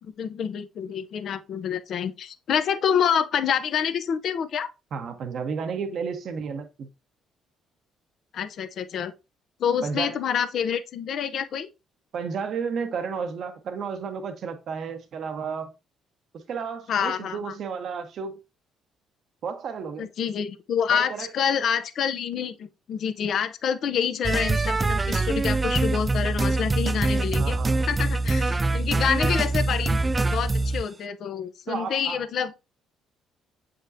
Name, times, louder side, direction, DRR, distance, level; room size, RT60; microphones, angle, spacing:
voice 1, 0.0-4.7 8.3-9.1 9.6-11.7 16.9-17.5 20.0-27.5 27.9-30.0 30.3-32.5, left 8 dB, 60° left, 0.7 m, -27 dB
voice 2, 4.9-6.9 9.8-10.2 12.1-15.7 16.5-18.4 19.4-20.1 20.9-21.3 27.4-27.8 31.7-32.2, right 6 dB, 60° right, 1.0 m, -32 dB
sound 1, 24.2-30.8, right 2 dB, 25° right, 0.3 m, -24 dB
7.5 x 5.1 x 2.7 m
hypercardioid pair, 60°, 0 cm